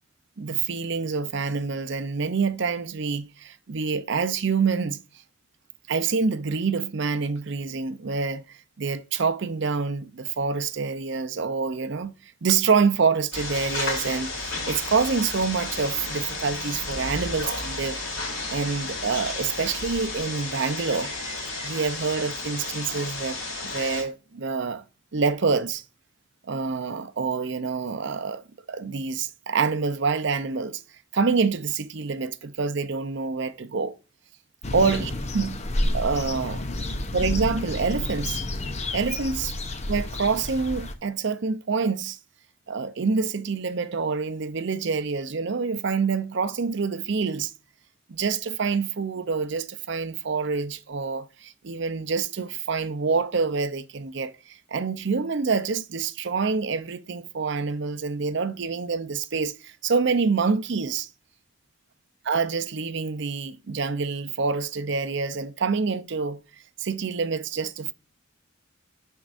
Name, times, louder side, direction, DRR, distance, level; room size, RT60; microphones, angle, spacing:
voice 1, 0.4-5.0 5.9-12.1 12.4-18.0 18.5-21.1 21.6-24.8 25.1-25.8 26.5-28.4 28.7-30.8 31.1-33.9 34.7-35.6 35.9-36.6 37.1-38.4 38.9-39.5 39.9-42.2 42.7-47.5 48.1-61.1 62.3-66.4 66.8-67.9, right 5 dB, 60° right, 0.6 m, -26 dB
sound 1, 13.3-24.0, left 2 dB, 75° left, 2.9 m, -32 dB
sound 2, 34.6-40.9, left 1 dB, 35° left, 0.7 m, -30 dB
11.5 x 4.5 x 2.5 m
head